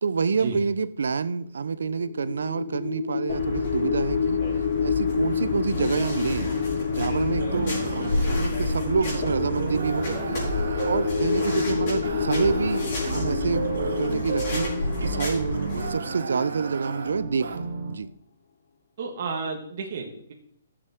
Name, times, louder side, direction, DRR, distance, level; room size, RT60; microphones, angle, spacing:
voice 1, 0.0-4.4 4.8-6.5 6.9-10.4 10.8-13.6 14.0-18.1, right 5 dB, 90° right, 0.7 m, -28 dB
sound 1, 1.8-16.8, left 6 dB, 50° left, 0.8 m, -29 dB
sound 2, 3.3-15.9, left 1 dB, 30° left, 5.0 m, -31 dB
sound 3, 7.3-18.0, right 5 dB, 60° right, 1.2 m, -33 dB
voice 2, 19.0-20.3, right 4 dB, 35° right, 1.5 m, -32 dB
15.0 x 7.1 x 3.6 m
hypercardioid pair, 180°, 0 cm